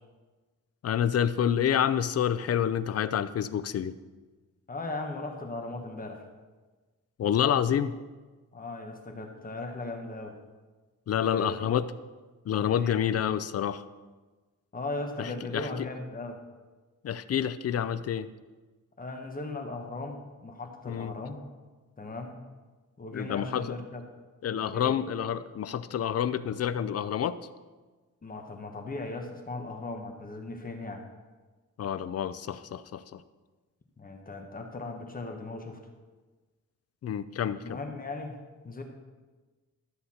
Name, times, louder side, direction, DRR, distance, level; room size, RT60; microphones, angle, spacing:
voice 1, 0.8-4.0 7.2-8.0 11.1-11.9 12.5-13.8 15.2-15.9 17.0-18.3 20.9-21.2 23.1-23.8 24.4-27.4 31.8-33.2 37.0-37.8, left 9 dB, 55° left, 14 dB, 0.5 m, -28 dB
voice 2, 4.7-6.2 8.5-10.4 11.2-11.8 12.8-13.0 14.7-16.4 19.0-21.4 22.0-22.4 23.0-24.0 24.7-25.0 28.2-31.0 34.0-35.8 37.6-38.4 38.6-38.8, left 2 dB, 30° left, 3 dB, 1.1 m, -37 dB
13.0 x 8.0 x 4.3 m, 1.3 s
wide cardioid pair, 125°, 30 cm